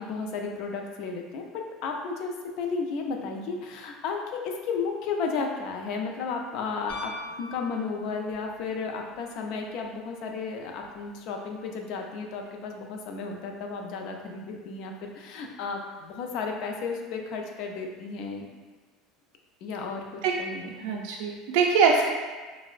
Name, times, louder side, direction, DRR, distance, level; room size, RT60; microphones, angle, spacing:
voice 1, 0.0-18.5 19.6-21.0, left 4 dB, 50° left, 2 dB, 0.3 m, -33 dB
Piano, 6.9-8.5 10.8-10.9, left 2 dB, 85° left, 0.8 m, -41 dB
voice 2, 20.8-22.0, right 5 dB, 65° right, -1 dB, 0.3 m, -23 dB
4.2 x 2.0 x 2.4 m, 1.4 s
cardioid pair, 175°, 0 cm